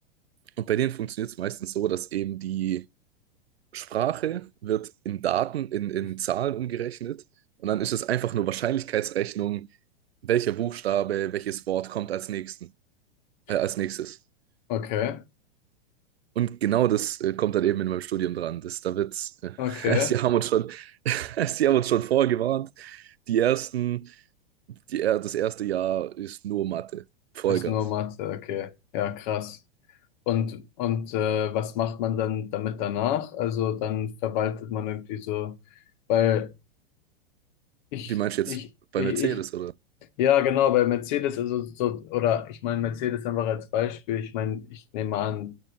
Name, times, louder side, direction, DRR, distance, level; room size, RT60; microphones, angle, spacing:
voice 1, 0.6-2.9 3.7-7.2 7.6-9.7 10.2-12.7 13.5-14.2 16.4-24.2 24.9-27.0 27.4-27.8 38.1-38.6 38.9-39.7, right 12 dB, 85° right, 0.5 m, -27 dB
voice 2, 14.7-15.2 19.6-20.1 27.5-29.6 30.3-35.6 36.1-36.5 37.9-38.1 38.5-38.6 39.0-39.4 40.2-45.6, left 10 dB, 50° left, 1.3 m, -27 dB
7.2 x 5.3 x 6.8 m
hypercardioid pair, 105°, 30 cm